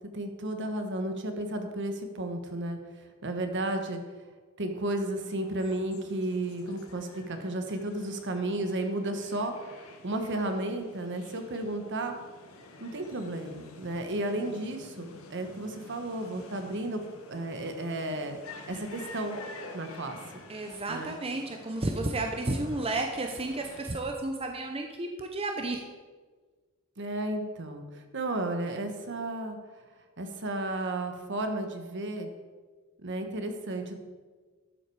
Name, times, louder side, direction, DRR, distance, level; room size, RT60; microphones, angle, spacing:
voice 1, 0.1-4.0 4.6-12.2 12.8-17.0 17.3-18.4 18.7-19.4 19.7-20.2 20.9-21.1 27.0-29.6 30.2-32.3 33.0-34.0, right 1 dB, 55° right, 6 dB, 1.3 m, -33 dB
sound 1, 5.2-23.8, left 3 dB, 70° left, 1.4 m, -49 dB
voice 2, 20.5-25.8, right 2 dB, 25° right, 3 dB, 0.7 m, -32 dB
12.5 x 7.6 x 4.8 m, 1.4 s
head